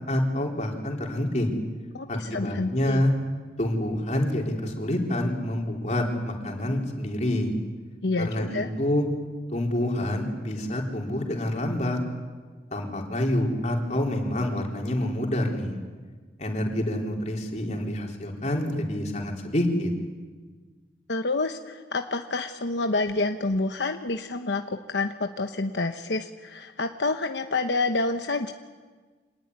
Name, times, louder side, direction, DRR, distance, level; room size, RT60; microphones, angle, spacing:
voice 1, 0.1-1.5 2.1-3.1 3.6-7.5 8.2-9.0 9.5-12.0 12.7-15.8 16.4-19.9, left 1 dB, 40° left, 0 dB, 4.1 m, -27 dB
voice 2, 1.9-3.0 8.0-8.7 21.1-28.5, left 3 dB, 80° left, 6 dB, 1.1 m, -28 dB
26.5 x 19.5 x 9.7 m, 1.4 s
head